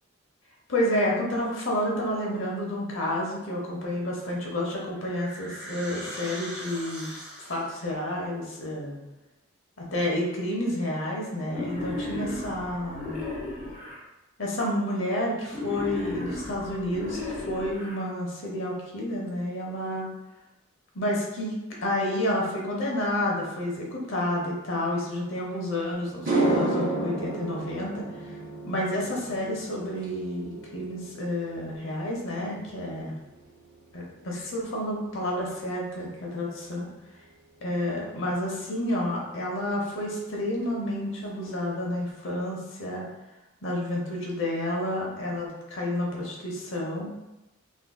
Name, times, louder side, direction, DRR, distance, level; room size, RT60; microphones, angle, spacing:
voice 1, 0.7-7.1 7.4-9.0 9.8-13.2 14.4-20.1 20.9-21.5 21.8-28.0 28.6-33.1 33.9-36.9 37.6-43.1 43.6-47.1, left 1 dB, 70° left, -2 dB, 0.8 m, -30 dB
sound 1, 4.4-7.8, right 1 dB, 5° right, 0.8 m, -41 dB
Wild animals, 11.5-14.0 15.5-18.0, left 2 dB, 30° left, 0.7 m, -35 dB
sound 2, 25.5-25.6 26.1-34.6 34.9-35.3 38.9-39.0 40.6-40.7 41.0-41.2 41.4-42.0, right 2 dB, 40° right, 0.7 m, -32 dB
3.5 x 2.5 x 2.3 m, 0.98 s
head